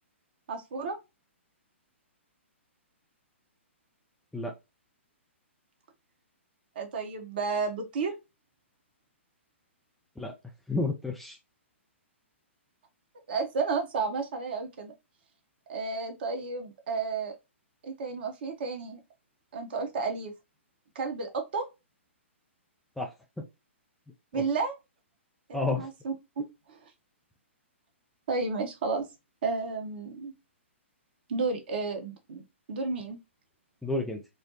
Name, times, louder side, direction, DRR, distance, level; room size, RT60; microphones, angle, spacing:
voice 1, 0.5-1.0 6.7-8.1 13.3-14.9 15.7-17.3 17.8-19.0 19.5-20.3 20.9-21.6 24.3-24.7 25.5-26.9 28.3-29.1 29.4-30.3 31.3-33.2, right 4 dB, 50° right, 1.1 m, -32 dB
voice 2, 10.7-11.4 23.0-23.1 23.4-23.5 24.3-24.4 25.5-25.9 33.8-34.2, left 2 dB, 5° left, 0.5 m, -30 dB
4.4 x 2.2 x 2.8 m
figure-of-eight pair, 120°, 7 cm